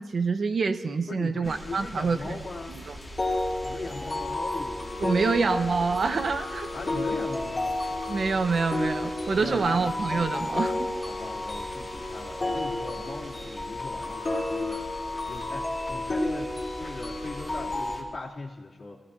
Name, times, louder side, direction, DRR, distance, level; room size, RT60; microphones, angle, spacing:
voice 1, 0.0-2.4 2.7-3.0 5.0-6.7 8.1-10.9, right 4 dB, 65° right, 7 dB, 1.1 m, -26 dB
voice 2, 1.1-2.8 3.6-5.8 6.7-8.0 9.2-9.8 11.1-14.9 15.3-19.0, left 3 dB, 60° left, -3 dB, 3.0 m, -39 dB
sound 1, 1.4-18.0, left 1 dB, 20° left, 3.6 m, -43 dB
sound 2, 3.2-18.0, left 2 dB, 35° left, 6.1 m, -32 dB
30.0 x 17.0 x 2.8 m, 1.3 s
wide cardioid pair, 90°, 0 cm